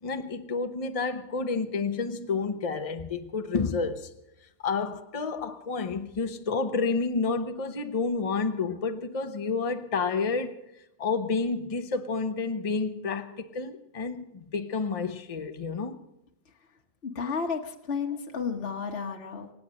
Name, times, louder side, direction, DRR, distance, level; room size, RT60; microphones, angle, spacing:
voice 1, 0.0-4.1 4.6-10.6 11.0-16.0, left 4 dB, 30° left, 0.9 m, -30 dB
voice 2, 17.0-19.5, left 5 dB, 45° left, 1.5 m, -32 dB
25.0 x 8.6 x 6.4 m
omnidirectional pair, 1.5 m